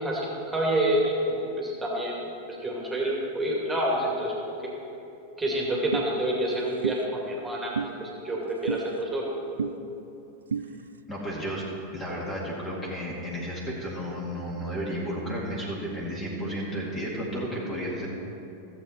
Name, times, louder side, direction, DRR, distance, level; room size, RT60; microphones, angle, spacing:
voice 1, 0.0-2.2 2.6-4.5 5.4-9.3, right 1 dB, 10° right, -3 dB, 2.4 m, -28 dB
sound 1, 5.9-6.1 6.8-7.0 7.8-7.9 8.7-8.8 9.6-9.7 10.5-10.7, right 6 dB, 70° right, 0.3 m, -28 dB
voice 2, 11.1-11.6 11.9-18.1, equal, 15° left, -5 dB, 2.2 m, -32 dB
15.5 x 7.8 x 4.4 m, 2.7 s
figure-of-eight pair, 90°, 0 cm